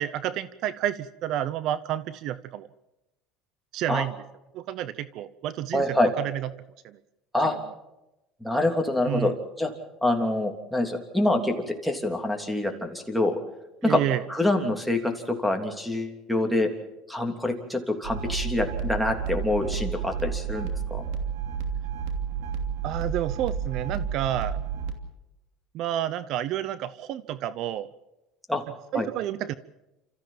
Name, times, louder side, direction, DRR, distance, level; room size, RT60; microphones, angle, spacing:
voice 1, 0.0-2.7 3.7-4.2 4.5-6.5 6.8-7.0 7.4-7.6 9.1-9.3 13.8-14.2 22.8-24.6 25.7-27.9 28.9-29.5, right 12 dB, 60° right, 16 dB, 0.8 m, -30 dB
voice 2, 5.7-6.1 7.3-7.6 8.4-9.7 10.0-13.4 13.8-14.0 14.3-16.7 17.1-21.0 28.5-28.6 28.9-29.1, left 1 dB, ahead, 2 dB, 3.2 m, -26 dB
sound 1, 18.0-24.9, right 7 dB, 80° right, 2.8 m, -31 dB
29.0 x 14.5 x 7.4 m, 0.95 s
supercardioid pair, 115°, 0 cm